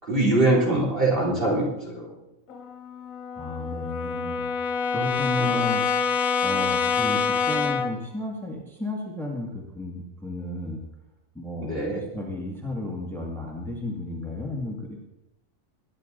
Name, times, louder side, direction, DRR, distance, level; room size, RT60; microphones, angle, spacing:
voice 1, 0.0-2.1 5.4-5.5 11.6-12.0, right 2 dB, 40° right, -4 dB, 3.8 m, -23 dB
Brass instrument, 2.5-8.0, left 5 dB, 75° left, 1.3 m, -26 dB
voice 2, 3.4-4.5 4.9-5.8 6.4-10.8 11.3-15.0, left 2 dB, ahead, -2 dB, 2.2 m, -33 dB
22.0 x 9.9 x 4.0 m, 0.90 s
omnidirectional pair, 1.5 m